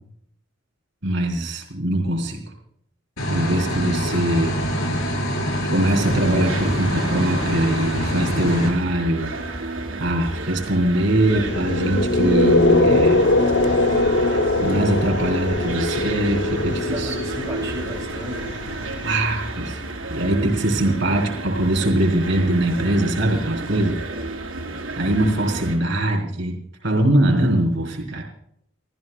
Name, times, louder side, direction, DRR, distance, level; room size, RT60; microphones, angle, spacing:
voice 1, 1.0-2.4 3.3-4.6 5.7-9.3 10.0-13.2 14.6-17.2 19.0-19.8 20.1-24.0 25.0-28.2, right 1 dB, 55° right, 0 dB, 4.0 m, -22 dB
sound 1, 3.2-8.7, equal, 85° left, 4.9 m, -25 dB
sound 2, 6.0-25.8, right 2 dB, 75° right, 3.9 m, -31 dB
sound 3, 11.2-19.3, left 2 dB, 50° left, 0.8 m, -21 dB
voice 2, 16.6-18.5 24.1-24.3, right 1 dB, 20° right, -3 dB, 2.8 m, -34 dB
29.5 x 15.0 x 2.3 m, 0.70 s
head